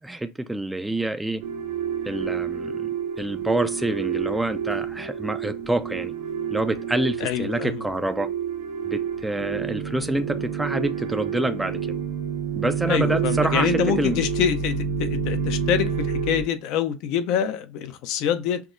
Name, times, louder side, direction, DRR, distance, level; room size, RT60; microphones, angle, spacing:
voice 1, 0.0-1.4 2.1-6.1 6.5-8.3 8.8-11.8 12.6-14.2, right 1 dB, 10° right, 0.3 m, -27 dB
sound 1, 1.4-16.4, right 7 dB, 90° right, 1.2 m, -29 dB
voice 2, 7.2-7.8 12.9-18.6, left 9 dB, 70° left, 0.5 m, -25 dB
5.7 x 2.0 x 2.5 m
supercardioid pair, 100°, 0 cm